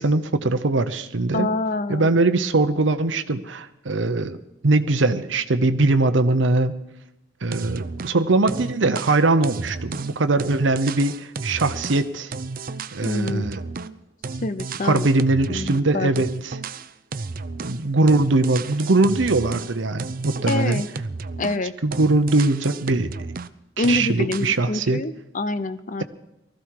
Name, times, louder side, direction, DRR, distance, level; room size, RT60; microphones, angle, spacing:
voice 1, 0.0-1.5 1.9-4.4 4.6-6.7 7.4-12.3 12.9-13.6 14.8-16.5 17.6-20.8 21.8-23.1 23.8-25.0, right 2 dB, 80° right, 10 dB, 0.8 m, -21 dB
voice 2, 1.3-2.1 13.0-13.5 14.4-15.1 15.5-16.3 20.5-20.9 21.4-21.7 23.8-26.0, left 2 dB, 45° left, 13 dB, 0.8 m, -26 dB
sound 1, 7.5-8.2 8.5-14.0 14.2-15.9 16.2-17.8 18.1-21.7 21.9-23.5 23.8-24.6, right 4 dB, 50° right, 0.6 m, -33 dB
19.5 x 14.0 x 4.8 m, 0.91 s
head